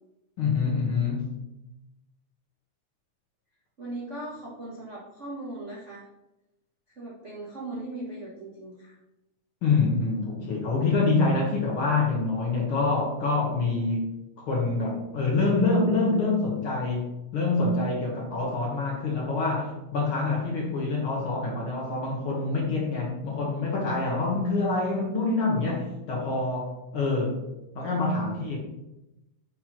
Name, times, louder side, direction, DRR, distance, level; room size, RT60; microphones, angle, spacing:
voice 1, 0.4-1.4 9.6-14.0 14.4-27.5 27.8-28.6, left 3 dB, 55° left, -2 dB, 1.7 m, -26 dB
voice 2, 3.8-6.1 6.9-9.0 24.1-24.4, right 2 dB, 45° right, -6 dB, 0.9 m, -39 dB
6.0 x 4.2 x 5.8 m, 0.94 s
omnidirectional pair, 3.5 m